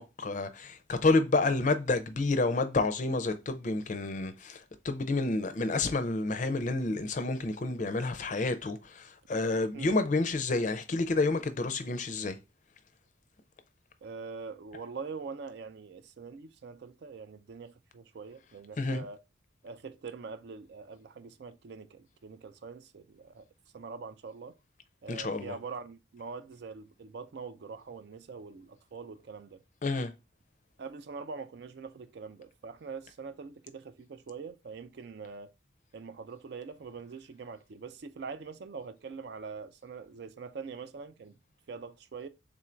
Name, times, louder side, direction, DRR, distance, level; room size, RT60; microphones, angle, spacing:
voice 1, 0.0-12.4 18.8-19.0 25.1-25.6 29.8-30.1, left 3 dB, 40° left, 0.4 m, -29 dB
voice 2, 9.7-10.1 14.0-19.2 19.6-23.5 23.7-24.5 25.0-29.6 30.8-35.5 35.9-41.3 41.7-42.3, right 5 dB, 55° right, 0.4 m, -43 dB
3.7 x 2.5 x 4.3 m
head